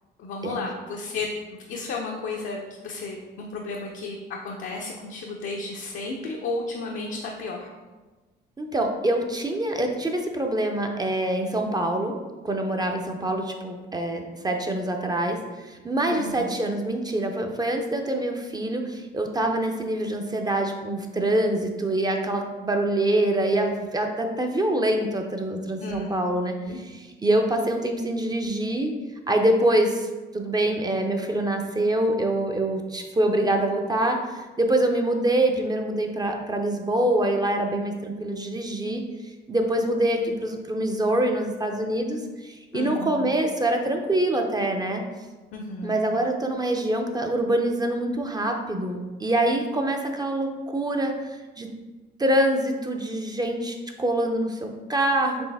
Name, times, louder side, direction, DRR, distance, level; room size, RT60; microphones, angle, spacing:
voice 1, 0.2-7.7 16.1-16.6 25.8-26.1 26.6-26.8 42.7-43.3 45.5-46.0, left 3 dB, 70° left, -1 dB, 0.6 m, -33 dB
voice 2, 8.6-12.2 12.4-26.5 27.2-28.9 29.3-30.1 30.3-39.0 39.5-45.0 45.8-51.7 52.2-55.4, right 1 dB, 20° right, 3 dB, 0.5 m, -25 dB
4.3 x 3.3 x 3.4 m, 1.2 s
cardioid pair, 90°, 20 cm